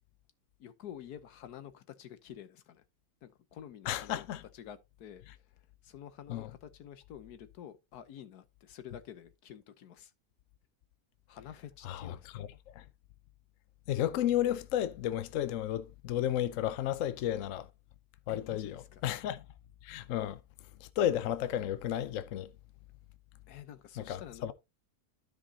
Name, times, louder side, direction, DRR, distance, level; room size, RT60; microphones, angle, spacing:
voice 1, 0.6-2.8 3.2-4.3 4.5-10.1 11.3-12.4 18.3-19.0 23.5-24.5, left 9 dB, 80° left, 1.4 m, -49 dB
voice 2, 3.9-4.4 6.3-6.5 11.8-12.8 13.9-17.7 18.3-19.4 19.8-20.4 20.8-22.5 24.0-24.5, left 11 dB, 65° left, 1.0 m, -33 dB
12.5 x 5.1 x 2.8 m
omnidirectional pair, 1.7 m